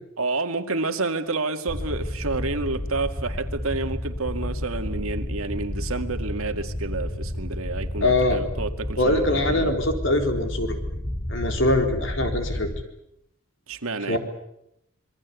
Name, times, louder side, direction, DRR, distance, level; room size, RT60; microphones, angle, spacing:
voice 1, 0.2-9.7 13.7-14.2, right 3 dB, 85° right, 7 dB, 2.1 m, -29 dB
sound 1, 1.7-12.8, left 1 dB, 20° left, 1.1 m, -31 dB
voice 2, 8.0-8.4 9.0-10.8 11.3-12.7 14.1-14.2, left 1 dB, 65° left, 5 dB, 4.1 m, -23 dB
27.0 x 22.0 x 8.3 m, 0.79 s
head